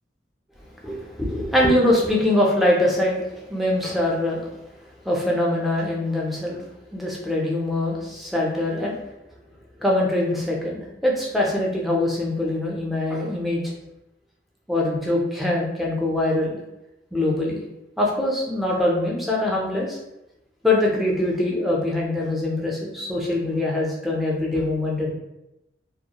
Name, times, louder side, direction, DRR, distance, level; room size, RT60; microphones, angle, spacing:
voice 1, 0.8-4.5 5.0-6.6 6.9-9.0 9.8-13.7 14.7-16.6 17.1-17.6 18.0-20.0 20.6-25.1, left 1 dB, ahead, -4 dB, 0.4 m, -23 dB
2.3 x 2.0 x 2.8 m, 0.90 s
head